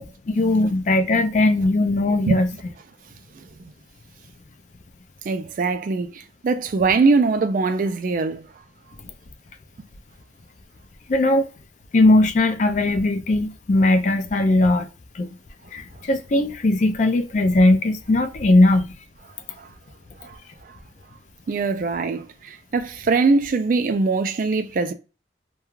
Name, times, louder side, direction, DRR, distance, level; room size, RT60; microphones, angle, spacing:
voice 1, 0.0-2.5 11.1-11.5 11.9-14.9 15.1-15.3 15.7-18.9, left 2 dB, 40° left, 0.4 m, -19 dB
voice 2, 5.3-8.5 19.6-19.7 20.2-20.4 21.5-24.9, right 4 dB, 50° right, 0.3 m, -22 dB
2.3 x 2.2 x 3.0 m
head